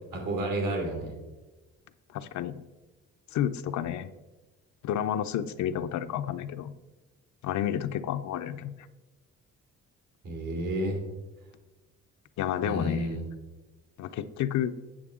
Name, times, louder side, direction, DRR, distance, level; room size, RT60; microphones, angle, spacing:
voice 1, 0.1-1.1 10.2-11.0 12.6-13.3, right 1 dB, 80° right, 0 dB, 2.8 m, -31 dB
voice 2, 2.1-2.5 3.3-4.1 4.8-6.7 7.4-8.7 12.4-13.1 14.0-14.7, left 10 dB, 70° left, 11 dB, 0.6 m, -30 dB
8.5 x 6.8 x 3.6 m, 1.1 s
cardioid pair, 90°, 30 cm